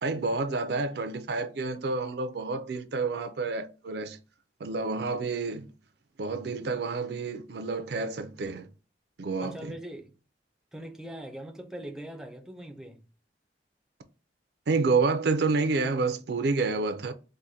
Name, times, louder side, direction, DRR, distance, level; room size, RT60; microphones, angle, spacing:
voice 1, 0.0-4.2 4.6-5.7 6.2-8.7 9.2-9.7 14.7-17.1, right 3 dB, 65° right, 0.4 m, -29 dB
voice 2, 9.4-10.1 10.7-13.0, right 1 dB, 5° right, 0.4 m, -41 dB
4.6 x 2.1 x 2.7 m
head